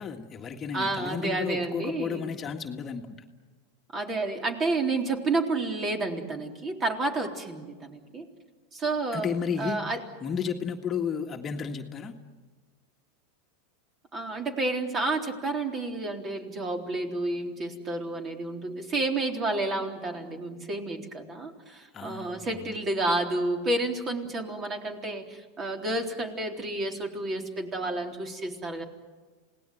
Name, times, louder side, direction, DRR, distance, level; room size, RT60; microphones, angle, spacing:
voice 1, 0.0-3.0 9.1-9.8 10.2-12.1 21.9-22.8, left 6 dB, 30° left, 3 dB, 1.7 m, -32 dB
voice 2, 0.7-2.3 3.9-8.2 8.7-9.3 9.6-10.0 14.1-28.8, right 2 dB, 30° right, 3 dB, 3.8 m, -30 dB
28.0 x 18.5 x 9.4 m, 1.4 s
hypercardioid pair, 105°, 0 cm